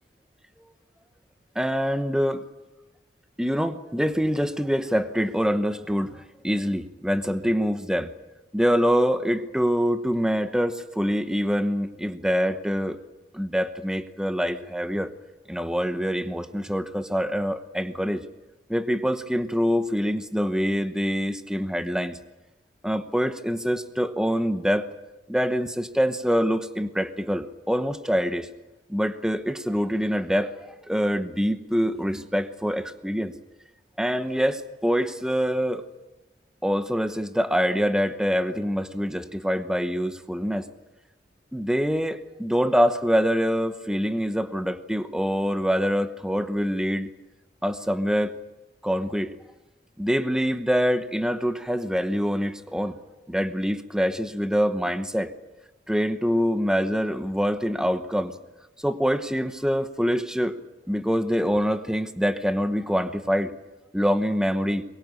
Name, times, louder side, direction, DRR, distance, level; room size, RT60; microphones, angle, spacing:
voice 1, 1.5-2.4 3.4-8.1 8.5-13.0 13.3-15.1 15.5-18.2 18.7-22.2 22.8-24.9 25.3-28.5 28.9-30.5 30.9-33.3 34.0-35.8 36.6-40.7 41.5-47.1 47.6-48.3 48.8-49.3 50.0-52.9 53.3-55.3 55.9-58.3 58.8-60.6 60.9-63.5 63.9-64.8, equal, 5° right, 10 dB, 1.0 m, -25 dB
23.0 x 22.0 x 8.4 m, 1.0 s
head